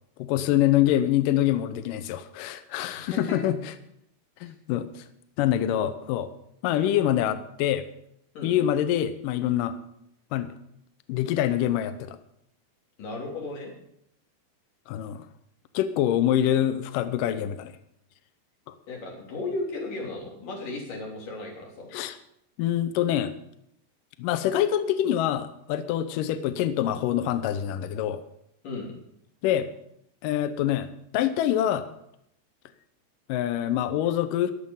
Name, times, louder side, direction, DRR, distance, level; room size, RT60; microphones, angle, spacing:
voice 1, 0.2-3.7 4.4-5.0 5.4-6.3 6.6-7.8 8.4-9.7 10.3-10.5 11.1-12.2 14.9-15.2 15.7-17.7 18.7-18.8 21.9-22.2 22.6-23.3 24.2-28.2 29.4-29.7 30.2-30.9 31.1-31.9 33.3-34.5, left 11 dB, 85° left, 11 dB, 1.9 m, -25 dB
voice 2, 2.9-3.4 4.4-4.5 8.3-8.5 13.0-13.7 18.9-21.9 28.6-28.9, left 2 dB, 50° left, -2 dB, 4.7 m, -35 dB
20.5 x 7.6 x 5.6 m, 0.76 s
omnidirectional pair, 4.9 m